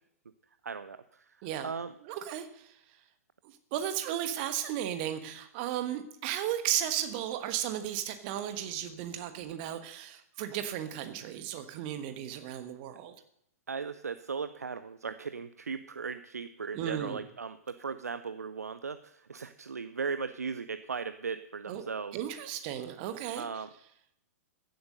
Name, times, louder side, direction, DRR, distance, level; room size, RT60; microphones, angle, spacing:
voice 1, 0.6-1.9 13.7-22.2 23.4-23.7, right 5 dB, 80° right, 13 dB, 0.6 m, -37 dB
voice 2, 2.1-2.7 3.7-13.1 16.7-17.2 21.7-21.8 22.1-23.4, right 11 dB, 40° right, 9 dB, 1.3 m, -35 dB
15.5 x 8.0 x 6.7 m, 0.74 s
figure-of-eight pair, 110°, 8 cm